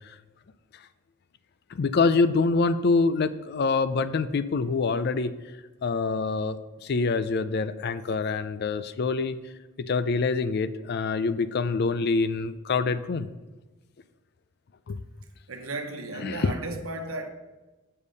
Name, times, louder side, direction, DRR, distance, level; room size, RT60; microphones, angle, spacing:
voice 1, 1.7-5.3 5.8-9.4 9.8-13.3 14.9-15.0 16.1-16.5, left 4 dB, 50° left, 0.4 m, -25 dB
voice 2, 15.5-17.3, right 2 dB, 85° right, 1.0 m, -34 dB
7.2 x 6.6 x 5.3 m
head